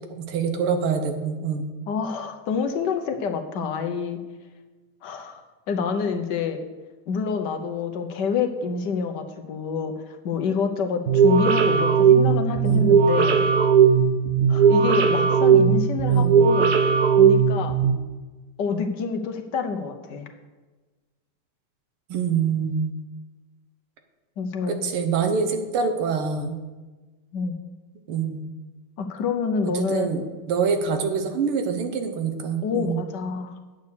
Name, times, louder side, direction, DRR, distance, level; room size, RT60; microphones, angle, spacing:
voice 1, 0.2-1.7 12.7-12.9 16.1-16.4 22.1-22.9 24.7-26.6 28.1-28.5 29.7-33.0, right 6 dB, 90° right, 6 dB, 2.0 m, -25 dB
voice 2, 1.9-4.2 5.0-5.4 5.7-6.6 7.1-13.4 14.5-16.7 17.2-17.7 18.6-20.3 24.4-24.8 27.3-27.6 29.0-30.1 32.6-33.6, left 5 dB, 60° left, 6 dB, 1.4 m, -27 dB
sound 1, 11.1-17.9, right 6 dB, 60° right, 1.2 m, -18 dB
8.9 x 8.2 x 6.6 m, 1.3 s
omnidirectional pair, 2.3 m